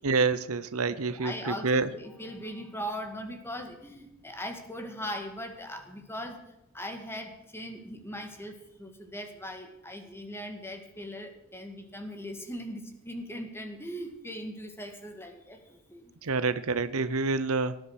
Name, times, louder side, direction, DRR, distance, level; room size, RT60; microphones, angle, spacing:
voice 1, 0.0-1.9 16.2-17.8, right 4 dB, 75° right, 14 dB, 0.8 m, -27 dB
voice 2, 1.0-6.4 6.7-16.1, equal, 10° left, 6 dB, 2.1 m, -39 dB
18.0 x 10.5 x 6.5 m, 0.88 s
head